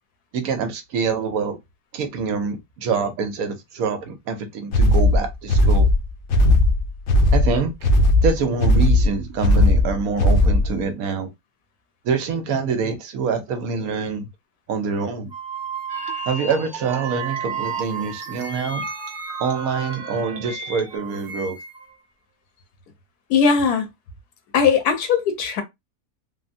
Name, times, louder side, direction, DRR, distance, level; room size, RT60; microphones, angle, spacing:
voice 1, 0.3-1.6 1.9-5.9 7.3-7.9 8.2-11.3 12.0-14.3 14.7-15.3 16.3-18.8 19.4-21.6, right 5 dB, 75° right, 1.1 m, -25 dB
sound 1, 4.7-10.8, left 1 dB, 65° left, 0.7 m, -17 dB
sound 2, 15.3-20.6 20.9-22.0, right 7 dB, 5° right, 0.6 m, -34 dB
sound 3, 15.9-21.0, right 2 dB, 50° right, 0.6 m, -35 dB
voice 2, 23.3-23.9 24.5-25.6, left 6 dB, 80° left, 1.3 m, -19 dB
3.4 x 2.1 x 2.6 m
omnidirectional pair, 1.6 m